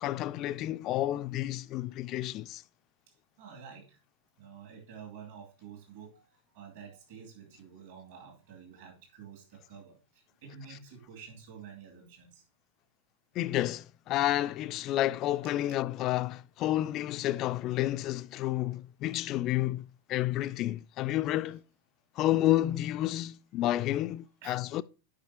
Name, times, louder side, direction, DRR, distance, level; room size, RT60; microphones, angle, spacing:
voice 1, 0.0-2.6 13.4-21.6 22.2-24.8, left 14 dB, 35° left, 0.3 m, -30 dB
voice 2, 3.4-4.0 4.4-12.4 24.4-24.6, right 7 dB, 55° right, 2.4 m, -49 dB
10.0 x 5.3 x 2.8 m
figure-of-eight pair, 90°, 0 cm